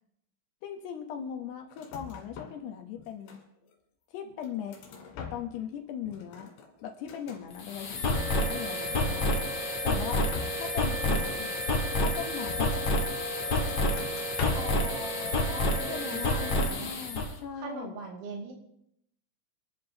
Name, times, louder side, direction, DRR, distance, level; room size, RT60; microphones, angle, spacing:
voice 1, 0.6-3.4 4.1-4.8 5.2-6.5 6.8-9.4 9.8-11.5 12.0-12.9 15.9-18.0, left 8 dB, 70° left, 3 dB, 2.9 m, -39 dB
sound 1, 1.7-2.7 3.0-3.7 4.2-5.7 6.0-7.5 7.9-8.6 8.9-9.8 10.3-13.1 13.4-14.9 15.2-15.9 16.2-16.5, left 7 dB, 90° left, 4.7 m, -42 dB
sound 2, 7.5-17.3, left 2 dB, 45° left, 2.1 m, -29 dB
sound 3, 8.1-16.6, right 2 dB, 15° right, 6.4 m, -37 dB
voice 2, 14.5-16.9 17.6-18.5, right 3 dB, 80° right, 0 dB, 4.7 m, -41 dB
26.5 x 12.0 x 2.9 m, 0.74 s
omnidirectional pair, 5.4 m